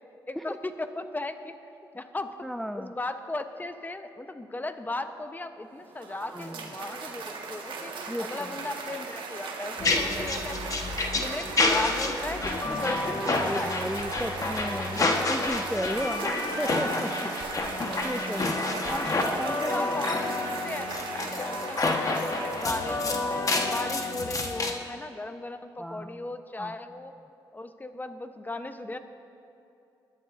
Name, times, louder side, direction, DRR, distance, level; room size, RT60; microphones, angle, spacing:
voice 1, 0.3-1.5 1.9-2.5 2.7-10.8 11.1-13.7 16.0-16.4 18.8-19.1 19.7-23.4 23.7-27.1 27.5-29.0, left 2 dB, 20° left, 9 dB, 0.9 m, -37 dB
voice 2, 2.4-2.9 6.2-6.7 8.1-8.6 13.3-16.3 16.6-17.3 18.0-19.9 25.8-26.3 26.6-26.8, equal, 5° left, 9 dB, 0.4 m, -35 dB
Cheering / Applause, 5.7-24.3, right 4 dB, 65° right, 1.6 m, -38 dB
sound 1, 9.8-24.7, left 2 dB, 40° left, 1.3 m, -29 dB
20.5 x 11.5 x 2.6 m, 2.7 s
supercardioid pair, 55°, 9 cm